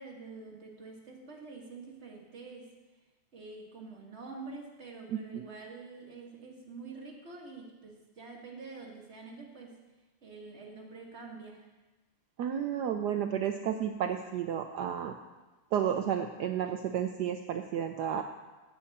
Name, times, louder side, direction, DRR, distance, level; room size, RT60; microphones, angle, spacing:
voice 1, 0.0-2.7 3.3-9.8 10.2-11.7, right 3 dB, 30° right, -1 dB, 1.9 m, -47 dB
voice 2, 12.4-15.1 15.7-18.2, right 9 dB, 90° right, 6 dB, 0.9 m, -32 dB
16.0 x 7.7 x 4.2 m, 1.2 s
omnidirectional pair, 2.4 m